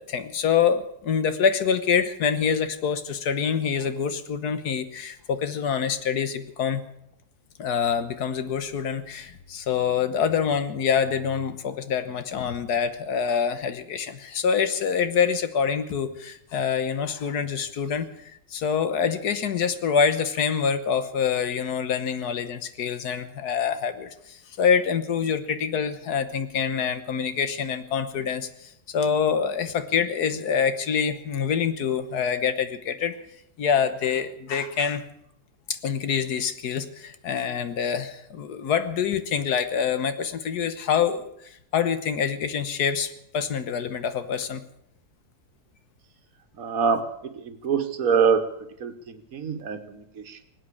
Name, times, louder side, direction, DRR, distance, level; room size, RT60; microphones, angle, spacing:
voice 1, 0.0-6.8 7.6-33.1 33.6-35.0 35.7-41.3 41.7-44.6, left 7 dB, 80° left, 11 dB, 1.7 m, -26 dB
voice 2, 46.6-48.5 48.8-50.4, right 6 dB, 60° right, 9 dB, 1.6 m, -25 dB
19.5 x 8.7 x 8.4 m, 0.75 s
omnidirectional pair, 1.7 m